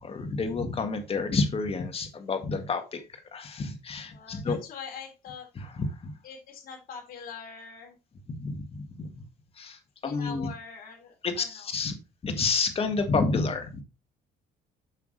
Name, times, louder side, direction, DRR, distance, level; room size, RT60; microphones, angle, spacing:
voice 1, 0.0-3.0 3.3-4.6 5.6-6.1 8.3-9.2 9.6-10.5 11.2-11.9 12.2-13.8, left 4 dB, 35° left, 6 dB, 1.9 m, -29 dB
voice 2, 4.1-5.5 6.2-8.0 10.0-11.7, left 6 dB, 60° left, 1 dB, 3.4 m, -43 dB
8.4 x 6.0 x 3.2 m, 0.28 s
cardioid pair, 110°, 17 cm